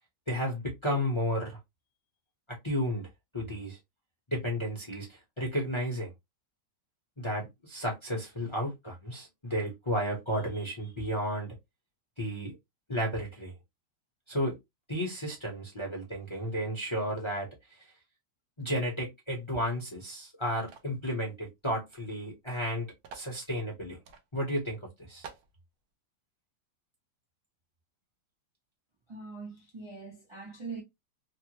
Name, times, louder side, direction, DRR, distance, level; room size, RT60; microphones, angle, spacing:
voice 1, 0.3-1.6 2.6-3.1 3.3-3.8 4.3-6.1 7.2-11.5 12.2-12.5 12.9-13.5 14.3-14.6 14.9-17.9 18.6-22.9 23.1-24.0 24.3-24.8 25.1-25.3, equal, 25° left, 0.6 m, -33 dB
sound 1, 20.7-21.0 21.9-22.0 22.3-22.4 23.0-23.3 24.1-24.2 24.7-24.8 25.2-25.5, right 6 dB, 70° right, 1.0 m, -48 dB
voice 2, 29.1-30.8, right 4 dB, 35° right, 0.4 m, -42 dB
3.3 x 2.0 x 2.9 m
omnidirectional pair, 1.9 m